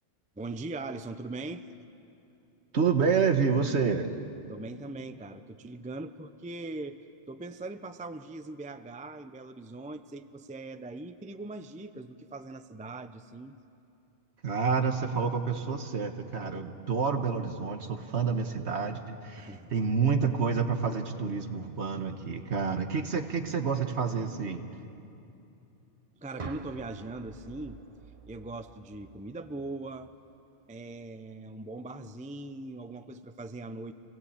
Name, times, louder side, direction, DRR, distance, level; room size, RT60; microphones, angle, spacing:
voice 1, 0.4-1.7 4.5-13.6 19.4-20.0 26.2-27.8 28.3-30.1 30.7-33.9, right 2 dB, 10° right, 10 dB, 0.4 m, -41 dB
voice 2, 2.7-4.1 14.4-24.6, right 5 dB, 70° right, 6 dB, 1.6 m, -28 dB
sound 1, 26.4-30.4, right 4 dB, 35° right, 0.8 m, -47 dB
26.0 x 18.0 x 8.5 m, 2.8 s
omnidirectional pair, 1.2 m